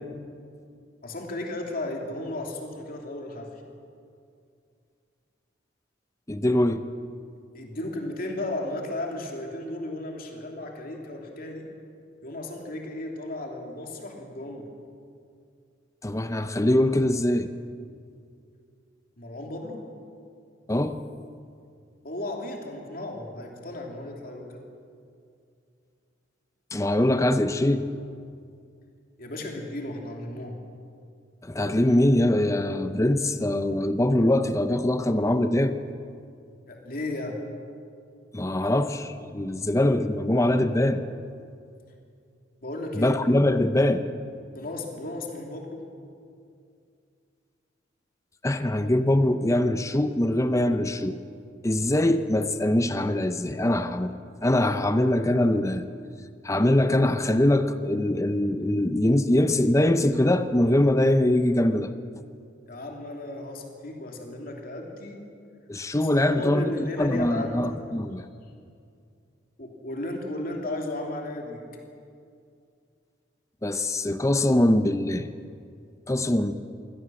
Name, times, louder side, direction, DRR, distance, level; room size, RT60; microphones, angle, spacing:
voice 1, 1.0-3.5 7.5-11.7 12.2-14.7 19.2-19.9 22.0-24.6 29.2-30.6 36.7-37.4 42.6-43.2 44.5-45.9 62.7-65.2 66.3-67.6 69.6-71.6, left 1 dB, 50° left, 1 dB, 2.9 m, -34 dB
voice 2, 6.3-6.8 16.0-17.5 20.7-21.0 26.7-27.9 31.4-35.8 38.3-41.0 42.9-44.1 48.4-51.2 51.6-54.1 54.4-55.8 56.4-61.9 65.7-68.3 73.6-75.3 76.1-76.5, left 1 dB, 15° left, 10 dB, 0.7 m, -23 dB
23.0 x 16.5 x 7.6 m, 2.4 s
head